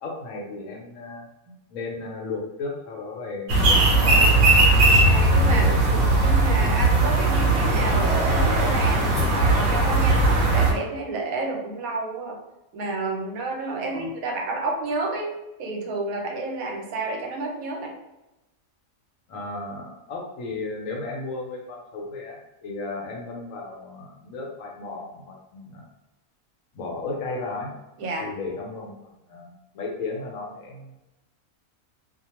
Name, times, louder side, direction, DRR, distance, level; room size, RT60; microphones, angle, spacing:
voice 1, 0.0-1.3 1.7-4.3 5.4-6.5 13.8-14.1 19.3-25.9 26.7-27.7 28.2-31.1, left 3 dB, 70° left, -1 dB, 1.0 m, -35 dB
sound 1, 3.5-10.7, right 2 dB, 60° right, 0.8 m, -18 dB
voice 2, 5.0-5.6 6.2-12.4 12.7-15.3 15.6-17.9 28.0-28.3, right 2 dB, 85° right, 0 dB, 1.1 m, -30 dB
2.4 x 2.2 x 2.9 m, 0.96 s
omnidirectional pair, 1.4 m